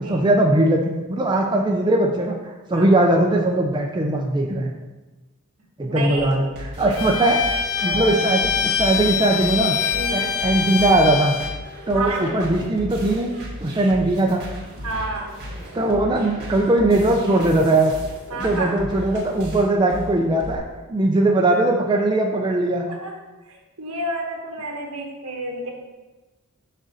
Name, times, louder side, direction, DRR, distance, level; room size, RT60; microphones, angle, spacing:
voice 1, 0.0-4.7 5.8-6.5 6.8-7.4 7.8-9.8 10.1-11.4 11.9-13.3 13.6-14.4 15.7-17.9 18.3-20.6 20.9-22.9, right 2 dB, 20° right, 0 dB, 0.5 m, -20 dB
voice 2, 5.8-6.3 6.8-7.3 7.8-8.1 9.9-10.3 11.9-12.4 14.8-15.3 18.3-18.8 22.9-23.2 23.5-25.7, right 2 dB, 70° right, 0 dB, 1.5 m, -30 dB
sound 1, 6.2-20.6, equal, 45° right, 1.8 m, -35 dB
Bowed string instrument, 7.0-11.6, left 7 dB, 65° left, 0.5 m, -24 dB
6.5 x 3.9 x 6.4 m, 1.1 s
head